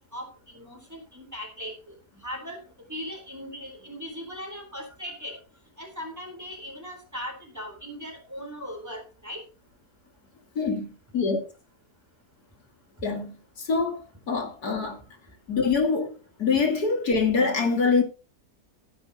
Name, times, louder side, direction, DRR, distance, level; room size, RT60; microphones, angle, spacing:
voice 1, 0.5-1.7 2.2-2.6 2.9-5.4 5.8-9.4, equal, 10° right, 4.0 m, -38 dB
voice 2, 13.0-13.3 13.6-15.0 15.5-16.1 16.4-18.0, left 4 dB, 90° left, 3.0 m, -24 dB
15.5 x 11.0 x 2.9 m
omnidirectional pair, 1.6 m